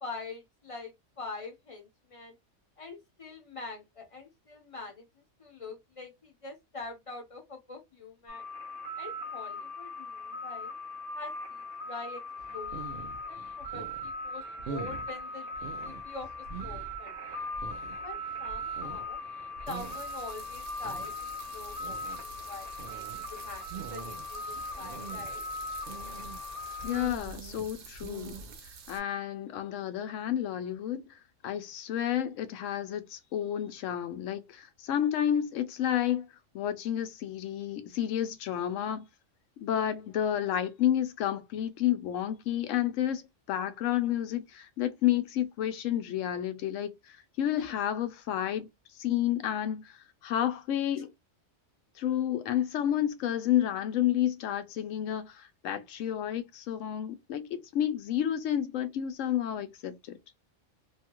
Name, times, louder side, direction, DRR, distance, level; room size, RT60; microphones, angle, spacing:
voice 1, 0.0-2.3 2.8-5.0 5.4-8.5 9.0-10.7 11.1-11.3 11.9-12.2 12.5-17.2 18.0-19.2 19.7-23.6 23.9-25.4 47.6-47.7 51.0-51.1, left 3 dB, 35° left, 0.7 m, -44 dB
sound 1, 8.3-27.1, left 1 dB, 45° right, 1.2 m, -39 dB
sound 2, 12.4-28.6, right 5 dB, 60° right, 0.6 m, -45 dB
sound 3, 19.7-29.0, right 5 dB, 85° right, 1.1 m, -49 dB
voice 2, 26.8-28.3 28.9-31.0 31.4-36.3 36.5-39.1 39.6-43.2 43.5-46.9 47.4-48.7 49.0-49.9 50.2-51.1 52.0-59.9, left 11 dB, 80° left, 0.9 m, -30 dB
2.7 x 2.3 x 2.9 m
omnidirectional pair, 1.3 m